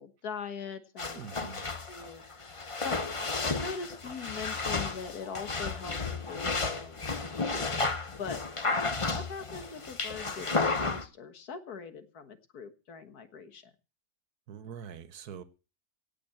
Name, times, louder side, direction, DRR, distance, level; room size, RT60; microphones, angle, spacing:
voice 1, 0.0-1.6 1.9-2.2 2.8-3.0 3.4-8.4 8.9-13.7, left 6 dB, 85° left, 9 dB, 1.9 m, -42 dB
sound 1, 1.0-11.0, left 3 dB, 25° left, 0.9 m, -33 dB
voice 2, 1.1-1.6 2.5-2.6 14.5-15.4, right 7 dB, 85° right, 13 dB, 1.5 m, -44 dB
17.5 x 6.1 x 7.7 m, 0.34 s
omnidirectional pair, 1.6 m